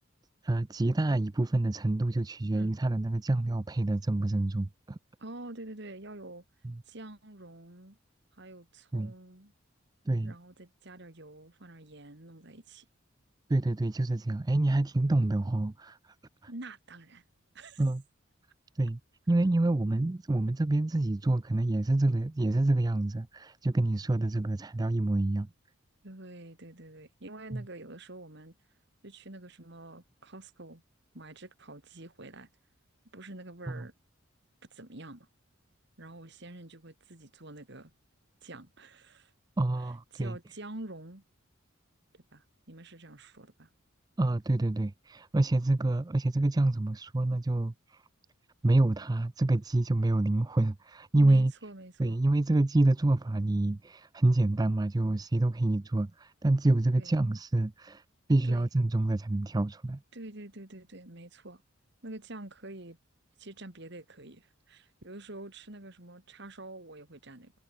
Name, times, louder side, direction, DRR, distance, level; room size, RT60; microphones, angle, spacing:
voice 1, 0.4-5.0 6.6-6.7 8.9-9.1 10.1-10.3 13.5-16.1 17.8-18.0 18.8-19.0 19.3-25.5 27.5-27.6 33.7-33.8 39.6-40.4 44.2-48.0 48.6-51.5 52.0-58.0 58.3-60.0, right 2 dB, 20° right, 0.4 m, -27 dB
voice 2, 5.2-6.4 6.9-8.0 8.4-9.5 10.2-12.9 16.5-17.2 17.5-17.8 26.0-28.5 29.0-30.8 31.1-32.5 33.1-33.9 34.7-35.3 36.0-37.9 38.4-39.3 40.1-41.2 42.1-43.7 51.2-52.2 56.9-57.1 58.4-58.7 60.1-61.6 62.0-63.0 63.4-67.5, right 2 dB, 55° right, 2.7 m, -47 dB
head